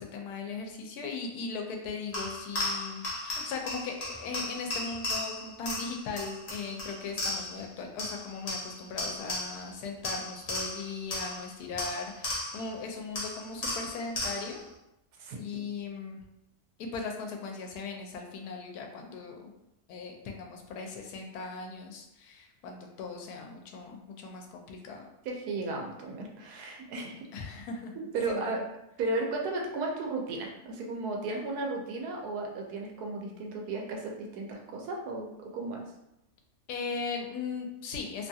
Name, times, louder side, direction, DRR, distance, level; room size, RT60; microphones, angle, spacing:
voice 1, 0.0-14.6 15.4-16.2 16.8-19.5 19.9-25.1 27.3-27.9 28.3-28.6 36.7-38.3, left 4 dB, 85° left, 2 dB, 1.1 m, -38 dB
sound 1, 2.1-7.7 8.0-9.7 10.0-12.7 13.2-14.6, left 2 dB, 35° left, 0.7 m, -36 dB
voice 2, 15.2-15.7 25.2-27.2 28.1-28.6 29.0-35.8, right 3 dB, 90° right, 0 dB, 1.1 m, -34 dB
2.9 x 2.3 x 2.6 m, 0.88 s
omnidirectional pair, 1.6 m